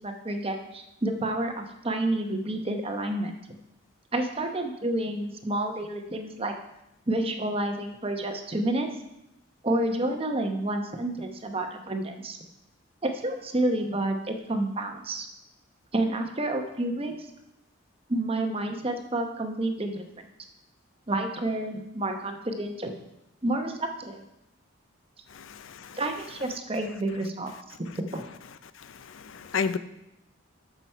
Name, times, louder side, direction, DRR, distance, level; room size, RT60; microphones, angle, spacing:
voice 1, 0.0-3.3 4.1-6.5 7.1-8.9 9.6-12.4 13.0-15.3 15.9-17.3 18.1-20.0 21.1-22.9 23.4-24.2 25.9-28.2, right 1 dB, 25° right, 5 dB, 0.9 m, -29 dB
voice 2, 25.3-26.0 29.1-29.8, left 5 dB, 70° left, 12 dB, 0.5 m, -31 dB
13.0 x 6.1 x 4.5 m, 0.87 s
head